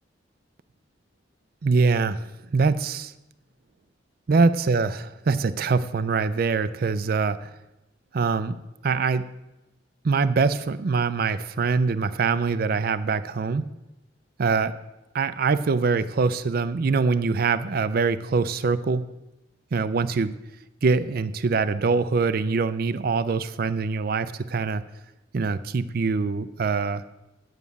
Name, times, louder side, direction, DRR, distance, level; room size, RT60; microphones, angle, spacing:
voice 1, 1.6-2.2 2.5-3.1 4.3-7.5 8.1-8.6 8.8-9.3 10.0-13.6 14.4-14.8 15.1-19.1 19.7-20.4 20.8-24.8 25.3-27.0, right 4 dB, 55° right, 13 dB, 0.4 m, -23 dB
8.9 x 7.2 x 8.2 m, 0.98 s
head